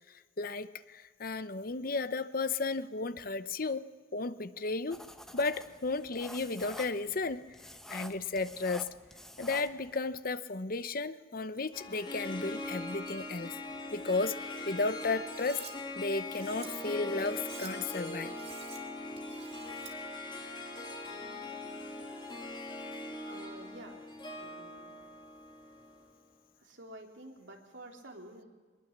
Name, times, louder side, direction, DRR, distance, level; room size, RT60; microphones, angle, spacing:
voice 1, 0.4-3.8 4.1-5.0 5.3-7.4 7.9-8.9 9.4-13.5 13.9-14.4 14.6-15.6 16.0-18.3, left 3 dB, 45° left, 13 dB, 0.8 m, -34 dB
sound 1, 4.9-10.0, equal, ahead, 1.0 m, -49 dB
Harp, 11.7-26.2, left 2 dB, 25° left, 2.8 m, -41 dB
Cutlery silverware, 15.3-15.7 16.2-16.7 17.3-17.7 18.3-18.8 19.2-19.9, right 7 dB, 35° right, 3.0 m, -49 dB
voice 2, 23.2-24.0 24.4-25.6 26.6-28.4, right 1 dB, 70° right, 1 dB, 3.6 m, -50 dB
22.5 x 21.0 x 7.4 m, 1.5 s
head